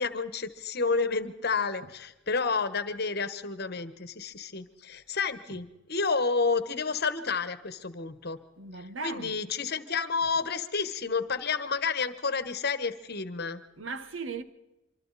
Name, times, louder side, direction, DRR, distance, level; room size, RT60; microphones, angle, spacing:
voice 1, 0.0-8.4 8.8-13.6, left 4 dB, 55° left, 1.3 m, -30 dB
voice 2, 8.6-9.3 13.8-14.4, right 4 dB, 70° right, 1.3 m, -37 dB
25.5 x 25.0 x 4.2 m
head